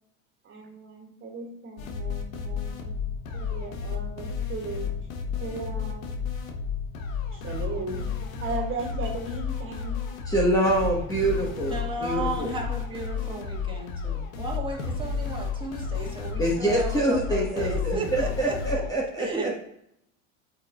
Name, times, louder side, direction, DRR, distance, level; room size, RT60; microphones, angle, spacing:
voice 1, 0.5-3.0 3.3-4.9 5.4-6.2 7.3-8.0 8.4-10.0, right 3 dB, 30° right, 0 dB, 2.0 m, -36 dB
sound 1, 1.8-18.9, left 6 dB, 80° left, 1.1 m, -32 dB
voice 2, 10.3-11.7 12.0-12.5 16.4-19.5, right 1 dB, 10° left, -3 dB, 1.2 m, -25 dB
voice 3, 11.7-18.8 19.2-19.5, right 2 dB, 10° right, -1 dB, 1.7 m, -34 dB
8.2 x 5.6 x 2.4 m, 0.76 s
supercardioid pair, 110°, 40 cm